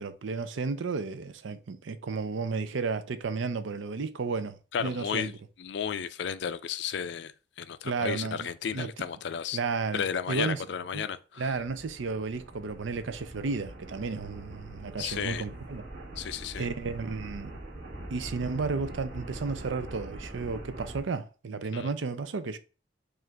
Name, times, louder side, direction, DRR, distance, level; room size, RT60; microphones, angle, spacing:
voice 1, 0.0-5.4 7.8-9.1 9.5-10.7 10.9-11.0 11.4-15.9 16.6-17.5 18.1-22.6, right 4 dB, 75° right, 0.5 m, -33 dB
voice 2, 4.7-5.3 5.6-7.3 7.6-9.6 9.9-11.5 15.0-15.4 16.2-16.6 21.7-21.9, left 7 dB, 60° left, 0.4 m, -33 dB
sound 1, 11.5-21.0, right 1 dB, 45° right, 1.6 m, -43 dB
4.8 x 2.5 x 4.4 m
head